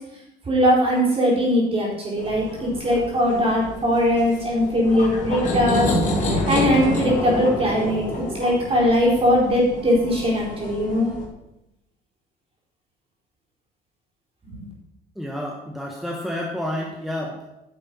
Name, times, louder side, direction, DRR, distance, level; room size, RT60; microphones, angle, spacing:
voice 1, 0.5-5.9 6.3-11.1 14.4-14.5, equal, 35° right, -3 dB, 4.5 m, -20 dB
sound 1, 2.2-11.2, left 1 dB, 45° left, 3.2 m, -28 dB
voice 2, 15.2-17.5, left 1 dB, ahead, -1 dB, 1.4 m, -30 dB
10.0 x 6.8 x 5.5 m, 0.90 s
cardioid pair, 110°, 17 cm